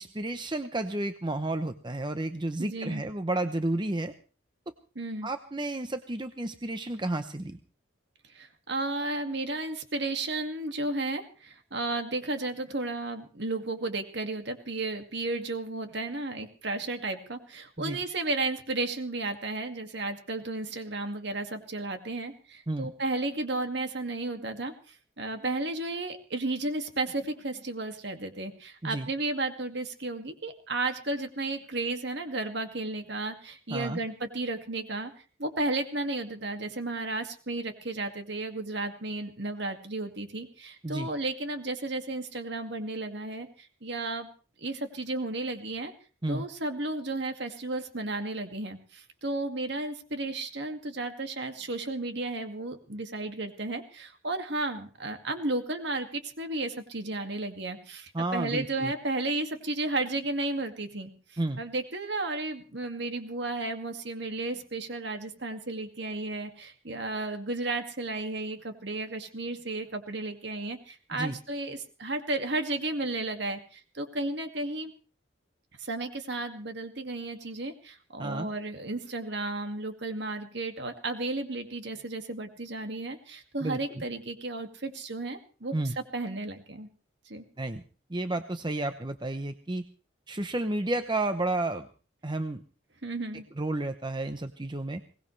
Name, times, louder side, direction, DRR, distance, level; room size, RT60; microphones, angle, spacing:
voice 1, 0.0-4.1 5.2-7.6 17.8-18.0 22.7-22.9 28.8-29.1 33.7-34.0 40.8-41.1 46.2-46.4 58.1-58.9 61.4-61.6 71.1-71.4 78.2-78.5 83.6-84.0 85.7-85.9 87.6-87.8 88.1-89.8 90.3-91.9 92.2-92.6 93.6-95.0, right 2 dB, 25° right, 8 dB, 0.8 m, -31 dB
voice 2, 2.6-3.0 5.0-5.3 8.3-35.1 35.4-44.3 44.6-45.9 46.3-74.9 75.8-86.9 87.3-87.4 93.0-93.5, right 2 dB, 60° right, 6 dB, 2.2 m, -33 dB
22.0 x 19.0 x 3.3 m, 0.36 s
head